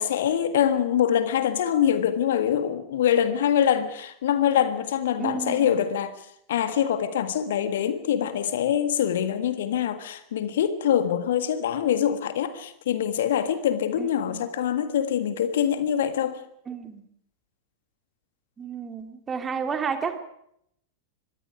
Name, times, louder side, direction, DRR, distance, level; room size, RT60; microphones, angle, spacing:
voice 1, 0.0-6.1 6.5-16.4, left 9 dB, 60° left, 1.7 m, -24 dB
voice 2, 5.2-5.9 14.0-14.5 16.7-17.0 18.6-20.2, right 6 dB, 20° right, 2.6 m, -32 dB
24.5 x 21.5 x 5.0 m
figure-of-eight pair, 90°, 0 cm